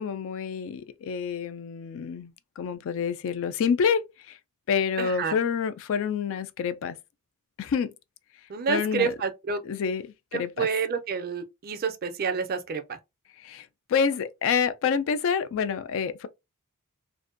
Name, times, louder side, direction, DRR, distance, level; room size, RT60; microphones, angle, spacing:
voice 1, 0.0-4.4 4.7-7.0 7.6-7.9 8.7-9.1 9.6-10.0 10.3-10.7 13.4-13.6 13.9-16.3, left 6 dB, 60° left, 0.3 m, -27 dB
voice 2, 5.0-5.4 8.5-9.6 10.3-13.0, right 5 dB, 45° right, 0.4 m, -29 dB
2.5 x 2.1 x 2.4 m
head